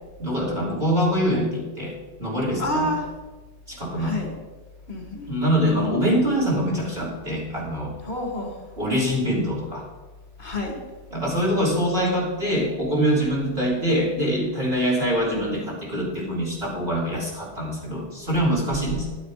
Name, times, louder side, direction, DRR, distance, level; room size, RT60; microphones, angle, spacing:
voice 1, 0.2-2.9 3.7-4.2 5.3-7.9 8.8-9.8 11.1-19.1, equal, 60° right, -3 dB, 3.8 m, -24 dB
voice 2, 2.6-3.1 4.0-4.3 4.9-5.3 8.0-8.6 10.4-10.8, left 1 dB, 70° left, 1 dB, 2.5 m, -28 dB
11.0 x 9.6 x 5.1 m, 1.2 s
omnidirectional pair, 1.1 m